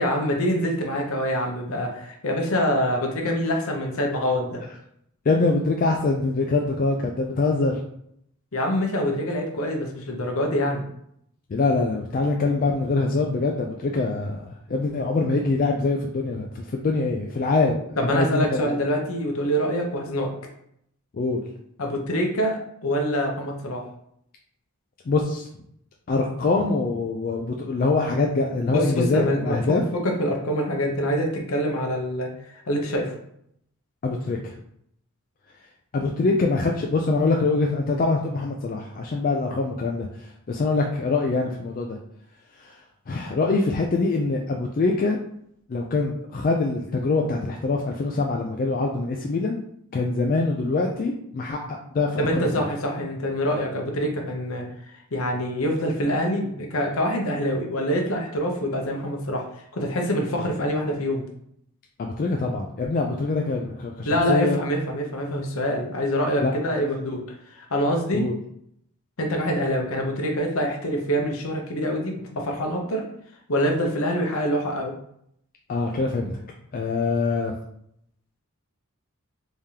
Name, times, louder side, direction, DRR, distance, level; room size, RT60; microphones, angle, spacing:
voice 1, 0.0-4.6 8.5-10.8 18.0-20.3 21.8-23.8 28.7-32.3 32.7-33.2 52.2-59.5 59.7-61.2 64.1-67.2 67.5-68.3 69.2-73.1 73.5-74.9, equal, 65° left, 1 dB, 0.8 m, -25 dB
voice 2, 5.3-7.8 11.5-17.8 18.1-18.8 21.1-21.4 25.1-25.5 26.1-29.8 34.0-34.5 35.9-40.1 40.5-42.0 42.6-42.7 43.1-45.2 45.7-49.6 49.9-52.4 62.0-64.6 66.4-66.5 68.1-68.3 75.7-76.4 76.7-77.5, left 3 dB, 40° left, 1 dB, 0.3 m, -24 dB
3.6 x 3.3 x 2.8 m, 0.72 s
head